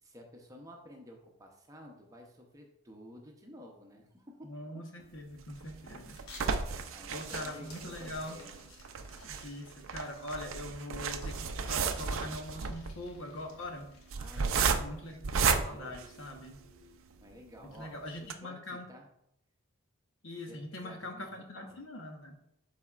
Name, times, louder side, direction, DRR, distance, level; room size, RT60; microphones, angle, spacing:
voice 1, 0.0-4.8 6.9-8.6 14.1-14.7 15.5-15.9 17.2-19.1 20.3-21.3 21.5-21.8, equal, 15° right, 1 dB, 0.7 m, -52 dB
voice 2, 4.4-6.2 7.1-8.4 9.2-13.9 14.4-16.6 17.6-18.9 20.2-22.4, left 1 dB, 60° left, 3 dB, 1.1 m, -42 dB
sound 1, 5.4-16.8 17.3-17.4 17.7-17.8 18.2-18.3, right 5 dB, 65° right, 0.5 m, -33 dB
sound 2, 6.1-14.5, left 2 dB, 85° left, 1.3 m, -56 dB
11.5 x 4.1 x 2.4 m, 0.79 s
head